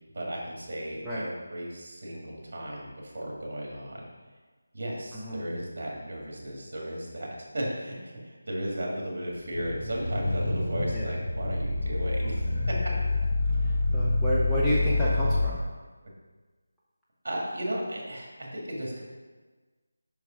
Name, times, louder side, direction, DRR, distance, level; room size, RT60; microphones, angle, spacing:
voice 1, 0.1-4.1 4.7-12.8 17.2-19.0, equal, 50° right, -3 dB, 2.0 m, -35 dB
voice 2, 5.1-5.4 10.9-11.1 13.6-15.6, equal, 5° left, -10 dB, 0.6 m, -30 dB
sound 1, 9.4-15.6, left 2 dB, 85° left, 1.3 m, -27 dB
5.6 x 4.7 x 5.1 m, 1.4 s
figure-of-eight pair, 170°, 0 cm